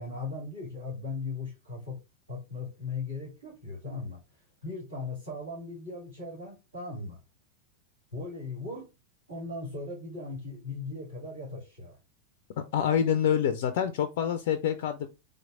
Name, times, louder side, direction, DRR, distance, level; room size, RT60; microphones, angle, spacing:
voice 1, 0.0-2.0 2.3-4.2 4.6-7.2 8.1-8.9 9.3-12.0, left 3 dB, 80° right, 2.3 m, -38 dB
voice 2, 12.6-15.1, left 8 dB, 50° left, 0.3 m, -27 dB
3.9 x 3.1 x 2.5 m
figure-of-eight pair, 90°, 0 cm